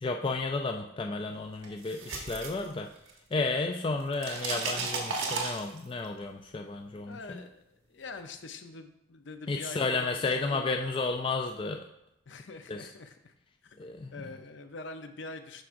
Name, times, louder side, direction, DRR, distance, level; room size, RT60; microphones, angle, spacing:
voice 1, 0.0-2.9 3.3-7.4 9.5-11.8 12.7-12.9 13.8-14.2, left 3 dB, 25° left, 4 dB, 0.3 m, -32 dB
sound 1, 1.6-3.3 3.6-6.0, right 4 dB, 80° right, 1.2 m, -34 dB
voice 2, 7.1-10.8 12.3-13.3 13.6-15.6, left 3 dB, 60° left, 7 dB, 0.6 m, -44 dB
11.5 x 4.6 x 2.6 m, 0.81 s
head